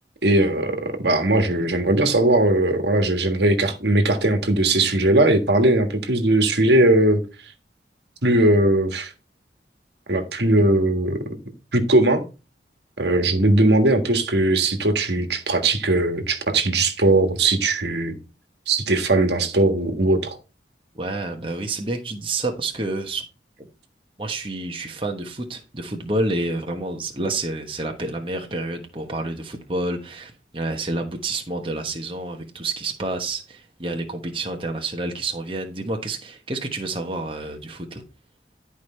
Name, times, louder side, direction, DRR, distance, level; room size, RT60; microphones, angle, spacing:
voice 1, 0.2-7.2 8.2-9.1 10.1-11.2 11.7-12.2 13.0-18.1 18.7-20.4, right 2 dB, 70° right, 1.6 m, -19 dB
voice 2, 20.9-23.2 23.6-23.7 24.2-38.0, right 2 dB, 30° right, 1.2 m, -29 dB
11.5 x 4.9 x 4.3 m
head